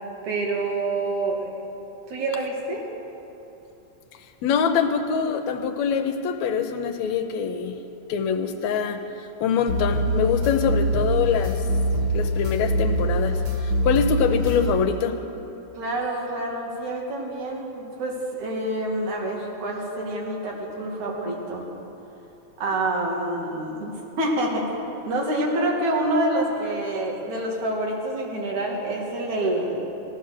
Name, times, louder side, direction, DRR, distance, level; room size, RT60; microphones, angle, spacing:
voice 1, 0.2-1.5 2.1-2.9 15.8-21.7 22.6-29.9, right 1 dB, 80° right, -1 dB, 3.5 m, -27 dB
voice 2, 4.4-9.1 9.4-11.7 12.1-15.2, left 6 dB, 75° left, 7 dB, 2.0 m, -24 dB
sound 1, 9.7-14.7, equal, 50° right, 1.5 m, -24 dB
16.5 x 13.0 x 6.5 m, 2.9 s
omnidirectional pair, 3.3 m